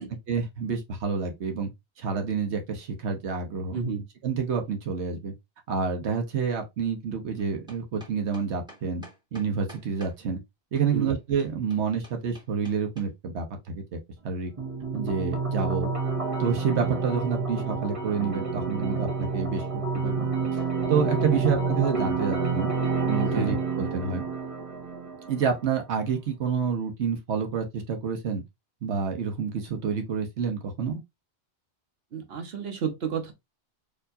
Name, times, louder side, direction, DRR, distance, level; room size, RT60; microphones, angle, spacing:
voice 1, 0.3-1.7 2.0-3.8 4.2-5.3 5.7-9.0 9.3-10.4 10.7-14.0 14.2-14.5 14.9-15.9 16.4-20.6 20.9-22.7 23.1-24.2 25.3-28.4 28.8-31.0, right 6 dB, 85° right, 1.1 m, -28 dB
voice 2, 3.7-4.0 10.9-11.1 21.3-21.4 23.3-23.6 32.1-33.3, right 6 dB, 65° right, 1.2 m, -31 dB
sound 1, 7.4-10.2 10.8-13.1, equal, 5° right, 1.6 m, -49 dB
sound 2, 14.6-25.6, right 4 dB, 30° right, 1.0 m, -29 dB
4.4 x 2.9 x 2.6 m
omnidirectional pair, 1.1 m